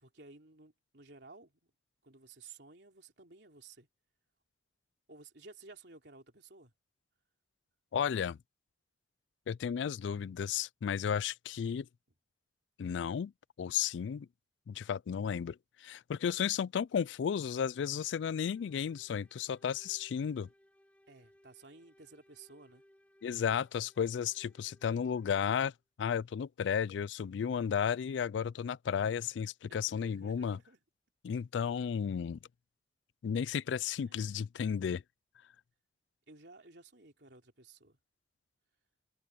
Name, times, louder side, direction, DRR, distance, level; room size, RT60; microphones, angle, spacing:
voice 1, 0.0-1.7 2.0-3.9 5.1-6.7 21.1-22.8 29.7-30.8 34.0-34.4 36.3-38.0, right 3 dB, 75° right, 3.3 m, -55 dB
voice 2, 7.9-8.4 9.5-11.9 12.8-13.3 13.6-14.3 14.7-20.5 23.2-25.7 26.0-30.6 31.2-32.4 33.2-35.0, left 7 dB, 85° left, 0.3 m, -33 dB
sound 1, 17.3-25.7, equal, 10° left, 3.5 m, -66 dB
head